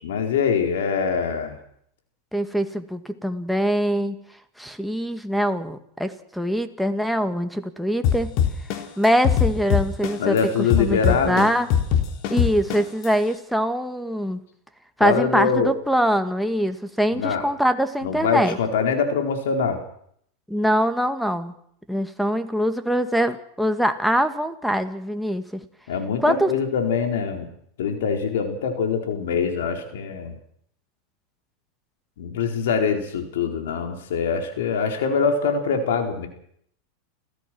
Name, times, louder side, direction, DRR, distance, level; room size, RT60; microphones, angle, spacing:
voice 1, 0.0-1.6 10.2-11.5 15.0-15.7 17.1-17.4 18.0-19.8 25.9-27.5 27.8-30.3 32.2-36.3, left 6 dB, 80° left, 4 dB, 4.5 m, -23 dB
voice 2, 2.3-4.2 4.6-8.3 9.0-10.4 10.8-11.7 12.3-14.4 15.0-18.6 20.5-21.5 21.9-25.6 26.2-26.5, equal, ahead, 10 dB, 2.0 m, -23 dB
sound 1, 8.0-10.4 10.7-13.1, left 9 dB, 55° left, 3.4 m, -20 dB
29.5 x 15.5 x 6.3 m, 0.67 s
hypercardioid pair, 115°, 0 cm